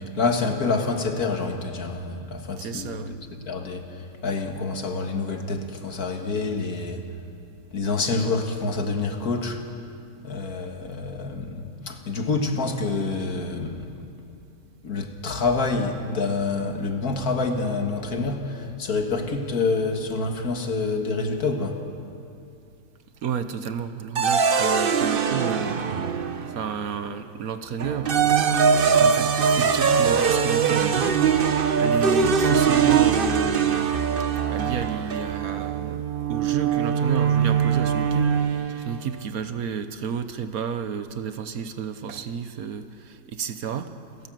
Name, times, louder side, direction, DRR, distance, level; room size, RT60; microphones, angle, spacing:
voice 1, 0.0-3.2 3.5-7.1 7.7-9.6 10.2-14.0 14.8-21.8, left 3 dB, 65° left, 4 dB, 2.1 m, -27 dB
voice 2, 2.6-3.2 23.2-25.8 26.5-28.1 28.9-31.2 31.8-33.9 34.5-36.0 36.3-43.9, right 7 dB, 65° right, 10 dB, 1.3 m, -31 dB
sound 1, 24.1-26.7 27.8-38.9, right 6 dB, 45° right, 0.8 m, -22 dB
29.0 x 13.0 x 7.6 m, 2.7 s
omnidirectional pair, 1.7 m